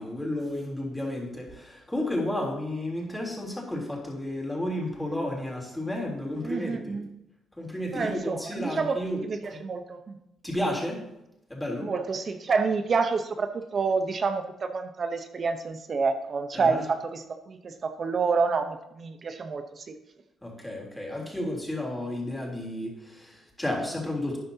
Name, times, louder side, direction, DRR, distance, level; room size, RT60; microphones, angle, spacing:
voice 1, 0.0-7.0 7.6-9.6 10.4-11.1 11.5-11.9 16.5-16.8 20.4-24.4, left 1 dB, 5° left, -2 dB, 3.4 m, -32 dB
voice 2, 6.4-7.1 7.9-10.2 11.8-20.0, right 4 dB, 45° right, 7 dB, 0.9 m, -28 dB
12.5 x 9.4 x 2.8 m, 0.86 s
cardioid pair, 90°, 0 cm